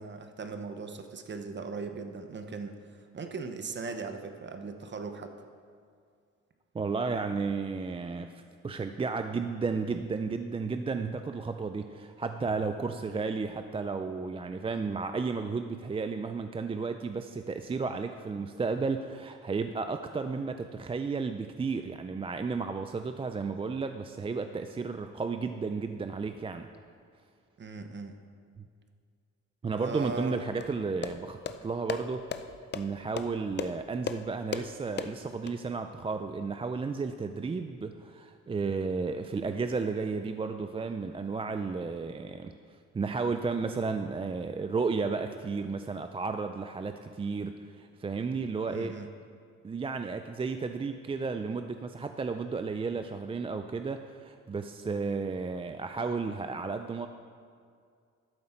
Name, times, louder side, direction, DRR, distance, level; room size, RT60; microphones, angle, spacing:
voice 1, 0.0-5.3 27.6-28.2 29.8-30.4 48.7-49.1, right 4 dB, 40° right, 7 dB, 0.9 m, -39 dB
voice 2, 6.7-26.7 28.6-28.7 29.6-32.2 32.7-42.5 42.9-48.9 49.6-57.1, right 4 dB, 20° right, 7 dB, 0.4 m, -33 dB
sound 1, 30.6-35.5, left 7 dB, 35° left, 0.5 m, -38 dB
12.0 x 7.5 x 4.4 m, 2.2 s
cardioid pair, 90°, 30 cm